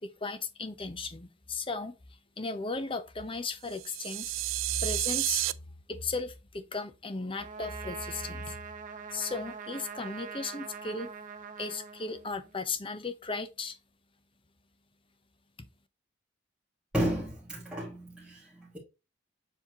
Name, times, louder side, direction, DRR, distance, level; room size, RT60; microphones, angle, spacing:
voice 1, 0.0-1.9 2.4-4.3 4.8-5.5 5.9-8.6 9.1-11.1 11.6-13.8, left 3 dB, 25° left, 0.8 m, -36 dB
sound 1, 3.7-5.5, right 17 dB, 90° right, 0.4 m, -31 dB
Trumpet, 7.3-12.6, right 6 dB, 40° right, 1.0 m, -43 dB
voice 2, 16.9-18.8, right 1 dB, 5° right, 2.1 m, -33 dB
7.3 x 4.3 x 3.0 m
head